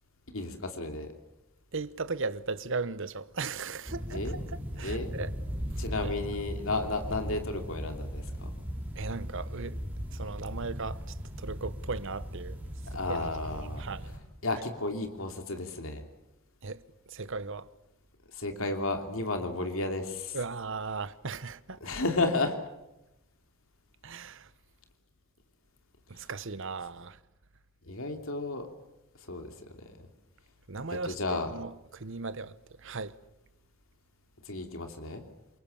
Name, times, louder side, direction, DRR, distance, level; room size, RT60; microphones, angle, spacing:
voice 1, 0.3-1.1 4.1-4.4 4.8-5.1 5.8-8.5 12.9-13.8 14.4-16.0 18.3-20.4 21.8-22.6 27.9-28.7 29.3-29.5 29.8-29.9 31.1-31.5 34.4-35.2, left 2 dB, 65° left, 2.9 m, -32 dB
voice 2, 1.7-5.3 5.7-6.1 8.9-9.8 10.1-12.6 12.9-14.1 16.6-17.7 20.3-21.9 24.0-24.5 26.1-27.2 30.7-33.2, right 4 dB, 60° right, 1.0 m, -37 dB
sound 1, 3.9-14.2, equal, 10° right, 5.6 m, -38 dB
27.5 x 23.0 x 7.2 m
head